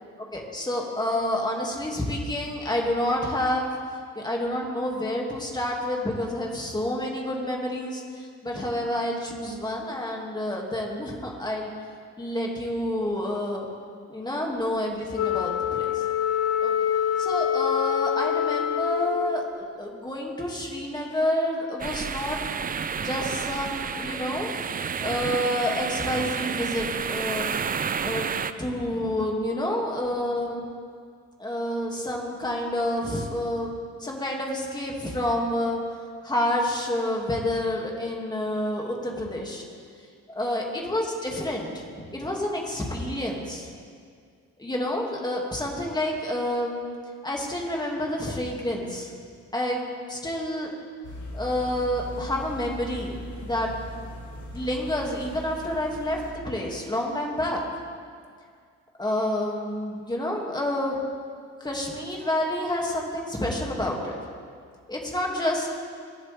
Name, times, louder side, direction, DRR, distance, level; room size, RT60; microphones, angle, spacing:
voice 1, 0.3-3.7 4.1-11.7 12.2-13.7 14.1-16.0 16.6-16.9 17.2-22.4 23.0-24.5 25.0-27.5 28.0-28.3 28.6-30.6 31.4-35.8 36.2-39.6 40.4-43.7 44.6-46.8 47.2-49.1 49.5-49.8 50.1-50.7 51.3-53.7 54.5-56.2 56.4-57.6 59.0-61.0 61.6-64.2 64.9-65.7, left 1 dB, 15° left, -1 dB, 2.5 m, -29 dB
Wind instrument woodwind instrument, 15.1-19.5, left 9 dB, 50° left, 1.1 m, -25 dB
sound 1, 21.8-28.5, right 6 dB, 30° right, 0.5 m, -30 dB
sound 2, 51.0-56.3, equal, 75° left, 2.4 m, -39 dB
23.0 x 8.1 x 3.6 m, 2.1 s
cardioid pair, 90°, 30 cm